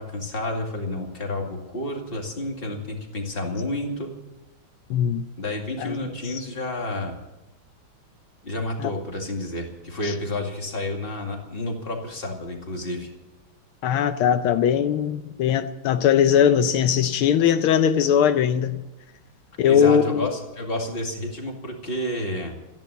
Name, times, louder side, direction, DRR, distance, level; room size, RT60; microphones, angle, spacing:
voice 1, 0.0-4.1 5.4-7.1 8.4-13.1 19.7-22.6, left 1 dB, 25° left, 2.3 m, -30 dB
voice 2, 4.9-5.2 5.8-6.0 6.3-6.4 8.8-8.9 10.0-10.1 13.8-18.8 19.6-20.3, left 8 dB, 85° left, 1.6 m, -20 dB
14.0 x 10.5 x 8.1 m
omnidirectional pair, 2.3 m